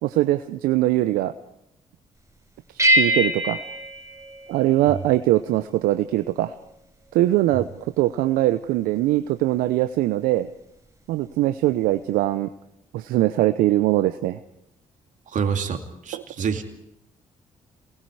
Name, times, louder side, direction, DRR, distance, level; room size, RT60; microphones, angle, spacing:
voice 1, 0.0-1.3 2.9-3.6 4.5-6.5 7.1-7.7 8.0-10.5 11.1-12.5 12.9-14.4 16.1-16.2, right 15 dB, 80° right, 11 dB, 0.7 m, -21 dB
sound 1, 2.8-5.0, equal, 20° right, 7.1 m, -23 dB
voice 2, 15.3-16.6, right 6 dB, 60° right, 6 dB, 2.7 m, -27 dB
28.0 x 20.0 x 4.8 m, 0.81 s
hypercardioid pair, 50°, 15 cm